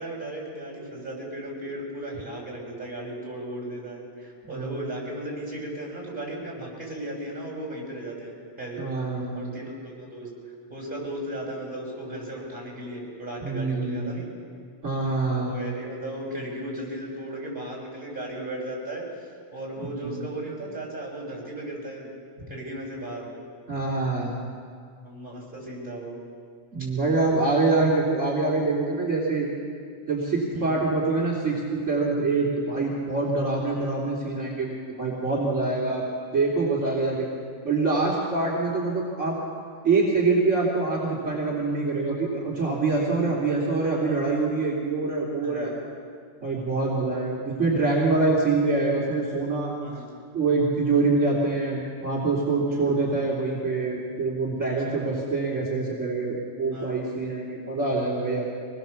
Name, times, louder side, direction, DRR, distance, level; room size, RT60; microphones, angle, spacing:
voice 1, 0.0-8.9 9.3-10.3 10.7-14.3 15.3-19.1 19.5-22.1 22.5-23.3 25.0-26.2 30.5-30.8 36.8-37.1 43.1-43.3 45.4-45.7 46.8-47.1 49.8-50.1 52.7-52.9 54.8-55.0 56.7-57.1 57.9-58.4, right 1 dB, 40° right, -2 dB, 7.4 m, -36 dB
voice 2, 4.4-4.8 8.8-9.4 13.4-14.1 14.8-15.6 19.8-20.2 23.7-24.3 26.7-29.5 30.1-36.0 36.3-37.3 37.6-39.4 39.8-45.7 46.4-49.7 50.3-58.5, right 3 dB, 70° right, -5 dB, 3.7 m, -25 dB
25.0 x 20.5 x 7.2 m, 2.1 s
omnidirectional pair, 1.3 m